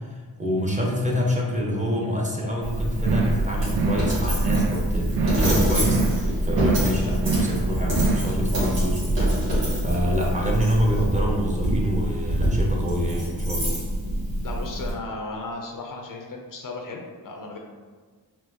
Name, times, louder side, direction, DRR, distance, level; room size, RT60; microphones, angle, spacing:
voice 1, 0.1-13.8, equal, 15° right, -2 dB, 0.7 m, -27 dB
Coin (dropping), 2.6-14.9, right 1 dB, 85° right, 1.3 m, -25 dB
sound 1, 3.0-3.4 3.7-4.1 4.4-4.8 5.1-5.5 5.8-6.2 6.5-6.9 7.2-7.6 7.9-8.3, right 4 dB, 55° right, 0.5 m, -25 dB
voice 2, 14.4-17.6, left 3 dB, 50° left, 1 dB, 0.5 m, -35 dB
4.2 x 2.0 x 2.7 m, 1.5 s
cardioid pair, 45°, 43 cm